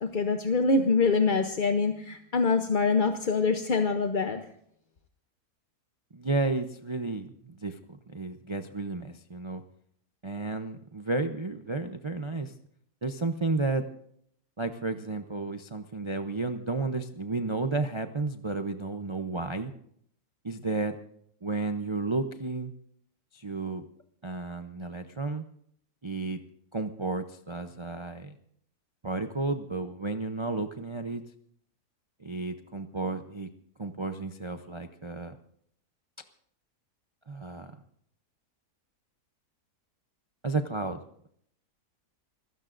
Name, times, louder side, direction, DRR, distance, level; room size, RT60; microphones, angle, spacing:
voice 1, 0.0-4.4, left 4 dB, 40° left, 6 dB, 0.8 m, -25 dB
voice 2, 6.1-9.6 10.2-12.5 13.0-13.9 14.6-19.7 20.4-21.0 21.4-22.7 23.3-23.9 24.2-25.4 26.0-26.4 26.7-28.3 29.0-31.2 32.2-33.5 33.8-35.3 37.3-37.7 40.4-41.0, right 3 dB, 35° right, 7 dB, 0.5 m, -32 dB
27.0 x 16.0 x 2.6 m, 0.68 s
omnidirectional pair, 1.7 m